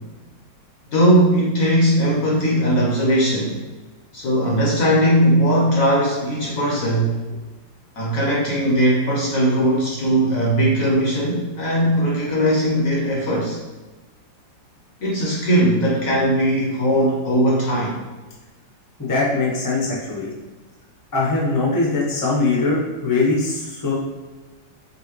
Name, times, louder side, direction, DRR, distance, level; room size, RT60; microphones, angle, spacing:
voice 1, 0.9-3.6 4.1-7.2 8.0-13.6 15.0-18.0, right 1 dB, 60° left, -4 dB, 1.0 m, -19 dB
voice 2, 19.0-20.3 21.1-23.9, left 3 dB, 20° left, -5 dB, 0.5 m, -21 dB
5.4 x 2.6 x 3.0 m, 1.2 s
omnidirectional pair, 2.1 m